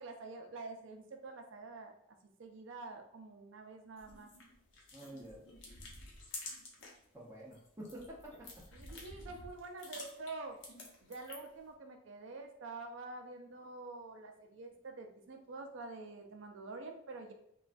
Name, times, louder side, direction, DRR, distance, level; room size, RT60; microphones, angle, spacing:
voice 1, 0.0-1.9 2.4-4.3 8.7-10.6 11.0-17.3, right 3 dB, 65° right, 5 dB, 0.4 m, -47 dB
sound 1, 4.0-7.0 7.4-11.6, left 2 dB, 65° left, 0.7 m, -50 dB
voice 2, 4.9-5.4 7.1-8.6, right 1 dB, 15° right, -4 dB, 0.5 m, -49 dB
3.1 x 2.2 x 2.5 m, 0.77 s
head